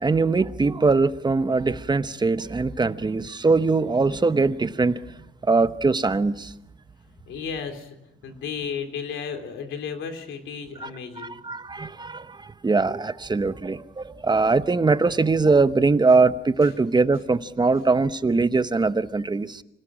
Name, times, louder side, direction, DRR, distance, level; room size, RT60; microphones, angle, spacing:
voice 1, 0.0-5.0 5.4-6.5 10.8-10.9 11.2-19.6, right 3 dB, 20° right, 1.0 m, -22 dB
voice 2, 7.3-8.0 8.2-11.3 16.6-16.7, left 6 dB, 75° left, 3.4 m, -33 dB
25.5 x 18.0 x 6.3 m
cardioid pair, 90°, 20 cm